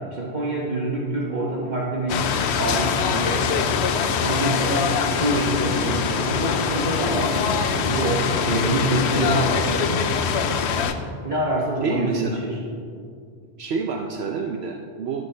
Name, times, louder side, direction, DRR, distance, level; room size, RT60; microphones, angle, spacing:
voice 1, 0.0-10.0 11.2-12.6, right 1 dB, 45° right, -4 dB, 1.2 m, -26 dB
sound 1, 2.1-10.9, left 7 dB, 75° left, 0.9 m, -23 dB
sound 2, 5.1-5.2 5.4-10.9, left 2 dB, 45° left, 1.3 m, -34 dB
voice 2, 11.8-12.4 13.6-15.3, right 5 dB, 70° right, 3 dB, 0.9 m, -28 dB
11.0 x 10.5 x 3.3 m, 2.4 s
omnidirectional pair, 1.1 m